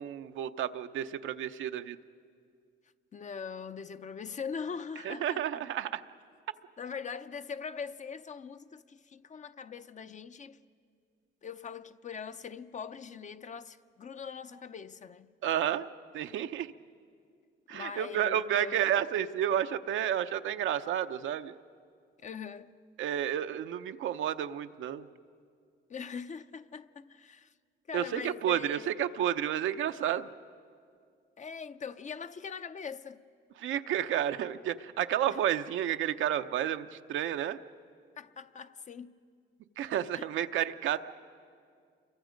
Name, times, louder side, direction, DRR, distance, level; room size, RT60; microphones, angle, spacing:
voice 1, 0.0-2.0 5.0-6.0 15.4-15.9 16.1-16.7 17.7-21.5 23.0-25.1 27.9-30.3 33.6-37.6 39.8-41.0, right 10 dB, 80° right, 0.8 m, -31 dB
voice 2, 3.1-5.4 6.8-10.6 11.4-15.3 17.7-18.8 22.2-22.7 25.9-27.5 27.9-28.9 31.4-33.2 35.3-35.4 38.2-39.1 40.1-40.3, left 6 dB, 40° left, 0.7 m, -42 dB
28.5 x 23.0 x 5.2 m
cardioid pair, 90°, 20 cm